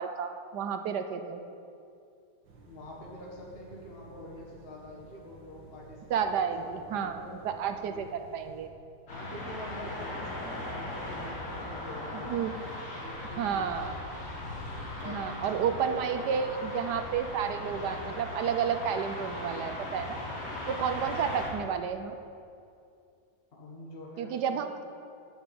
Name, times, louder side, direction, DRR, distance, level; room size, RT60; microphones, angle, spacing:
voice 1, 0.0-1.4 6.1-8.7 12.3-12.6 13.4-13.9 15.0-20.2 20.7-22.1 24.2-24.8, right 7 dB, 70° right, 8 dB, 1.2 m, -31 dB
sound 1, 2.4-8.7, right 4 dB, 85° right, 2.5 m, -53 dB
voice 2, 2.7-6.2 6.7-7.4 7.9-8.1 9.1-12.5 13.0-14.0 15.0-16.7 23.5-24.7, left 1 dB, 35° left, -3 dB, 1.8 m, -46 dB
sound 2, 9.1-21.5, left 1 dB, 50° left, 3.0 m, -38 dB
9.9 x 6.9 x 8.6 m, 2.5 s
omnidirectional pair, 2.0 m